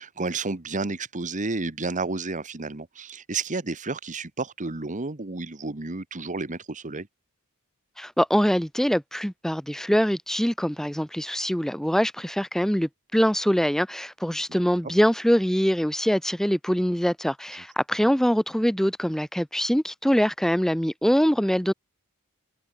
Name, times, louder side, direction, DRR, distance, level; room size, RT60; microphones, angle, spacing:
voice 1, 0.0-7.1 14.8-14.9, right 3 dB, 35° right, 1.3 m, -31 dB
voice 2, 8.0-21.7, equal, ahead, 1.0 m, -23 dB
head